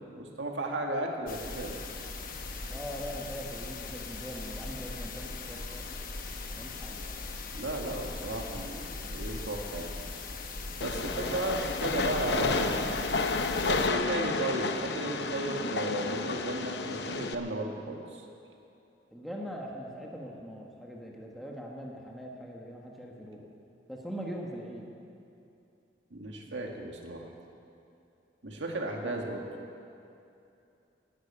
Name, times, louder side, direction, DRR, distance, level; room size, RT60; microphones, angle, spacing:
voice 1, 0.0-1.8 7.5-9.9 10.7-13.1 13.7-18.2 26.1-27.2 28.4-29.5, right 1 dB, 85° right, 1 dB, 1.9 m, -34 dB
sound 1, 1.3-13.9, left 3 dB, 50° left, 1.1 m, -39 dB
voice 2, 2.7-5.9 6.5-7.0 11.2-11.4 19.1-23.5 23.9-24.9 29.0-29.1, equal, ahead, -2 dB, 1.4 m, -41 dB
Train, 10.8-17.3, left 3 dB, 65° left, 0.8 m, -31 dB
11.5 x 11.5 x 8.6 m, 2.7 s
head